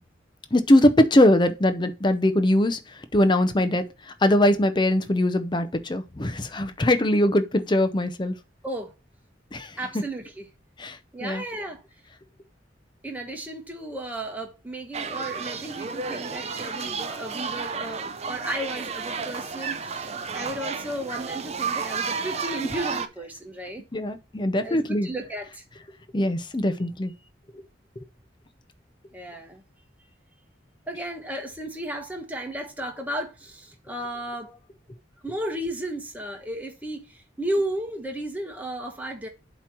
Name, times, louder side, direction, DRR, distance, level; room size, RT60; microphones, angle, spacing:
voice 1, 0.5-2.8 3.1-3.8 4.2-8.3 9.5-9.7 10.8-11.0 11.2-11.4 23.9-25.1 26.1-27.1, left 1 dB, 25° left, 0.6 m, -21 dB
voice 2, 9.8-10.5 11.1-11.8 13.0-23.8 24.6-25.6 29.1-29.6 30.0-30.1 30.9-34.6 35.2-39.3, right 1 dB, 10° right, 1.2 m, -34 dB
sound 1, 14.9-23.1, right 5 dB, 35° right, 0.6 m, -32 dB
7.9 x 3.1 x 5.9 m
head